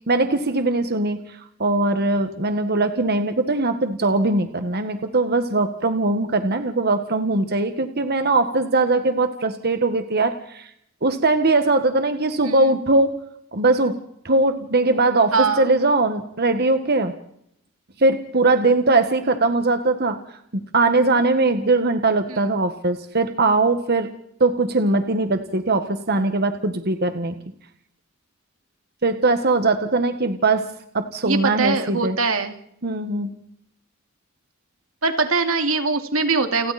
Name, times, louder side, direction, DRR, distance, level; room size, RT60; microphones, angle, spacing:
voice 1, 0.1-1.2 1.6-10.7 11.0-13.1 13.5-13.9 14.2-17.1 18.0-20.2 20.5-24.1 24.4-27.3 29.0-30.7 30.9-32.2 32.8-33.3, right 2 dB, 50° right, 7 dB, 1.6 m, -20 dB
voice 2, 15.3-15.7 22.3-22.5 31.2-32.5 35.0-36.7, right 4 dB, 90° right, 6 dB, 2.5 m, -22 dB
29.5 x 23.0 x 4.3 m, 0.72 s
head